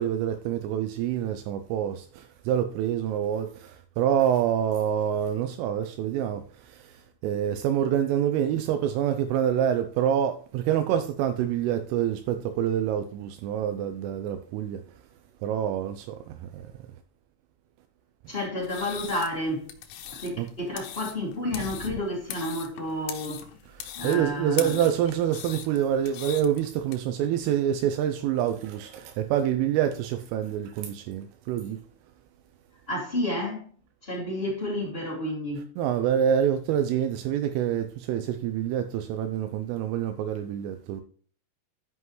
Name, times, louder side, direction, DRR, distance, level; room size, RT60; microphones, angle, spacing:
voice 1, 0.0-3.7 4.0-6.4 7.2-14.8 15.4-16.2 16.5-16.6 20.4-20.5 24.0-31.8 35.8-41.0, right 9 dB, 85° right, 3.2 m, -26 dB
voice 2, 18.3-19.7 20.1-23.4 23.9-24.8 32.9-33.7 34.0-35.7, left 1 dB, 45° left, 0.8 m, -30 dB
sound 1, 18.6-27.0, left 10 dB, 85° left, 3.6 m, -41 dB
13.0 x 5.7 x 3.1 m
omnidirectional pair, 5.8 m